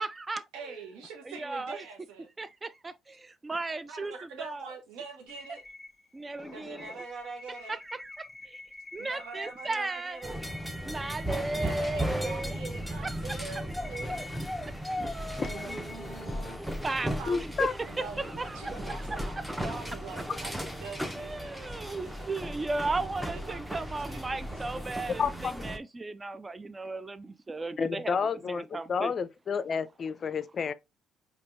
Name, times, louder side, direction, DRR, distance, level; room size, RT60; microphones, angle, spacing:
voice 1, 0.0-0.8 1.3-1.9 2.4-4.7 6.1-7.0 7.7-8.6 8.9-10.3 10.9-12.6 13.0-13.4 16.8-17.9 18.2-19.5 21.2-28.2 28.5-29.1, right 3 dB, 25° right, 0.4 m, -36 dB
voice 2, 0.5-2.3 3.9-5.6 6.5-7.8 9.0-10.4 11.5-14.6 15.4-16.7 17.2-17.4 17.9-22.3 23.3-24.5 24.7-24.9, right 4 dB, 75° right, 0.9 m, -44 dB
sound 1, 5.3-16.8, left 3 dB, 15° left, 1.6 m, -49 dB
voice 3, 6.4-6.9 11.4-11.5 15.4-15.5 17.3-17.7 25.2-25.5 27.8-30.7, left 6 dB, 45° left, 0.4 m, -31 dB
sound 2, 10.2-25.8, equal, 5° right, 0.7 m, -36 dB
4.3 x 2.9 x 2.5 m
hypercardioid pair, 55°, 0 cm